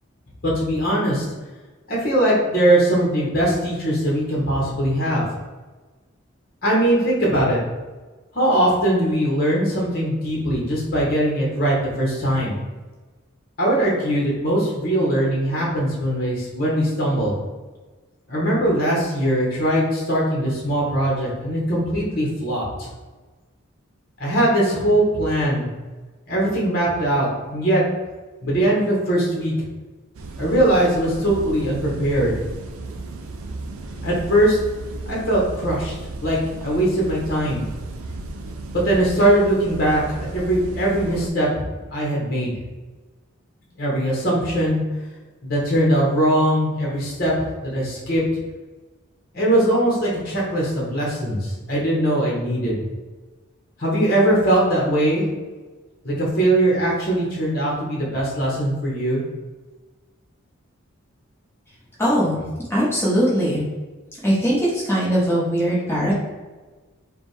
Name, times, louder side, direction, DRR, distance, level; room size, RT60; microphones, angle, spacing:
voice 1, 0.4-1.2 1.9-5.2 6.6-7.6 8.3-12.5 13.6-17.3 18.3-22.9 24.2-25.7 26.3-27.8 28.4-29.5 30.4-32.3 34.0-34.6 35.1-35.9 36.2-36.4 36.6-37.6 38.7-41.5 41.9-42.5 43.8-44.8 45.4-48.2 49.3-52.8 53.8-55.3 56.0-59.2, right 1 dB, 45° left, -4 dB, 1.2 m, -21 dB
sound 1, 30.1-41.3, right 2 dB, 90° right, 0.5 m, -34 dB
voice 2, 62.0-62.4 62.7-63.6 64.2-66.1, equal, 10° left, -8 dB, 1.2 m, -20 dB
5.0 x 2.4 x 3.3 m, 1.3 s
head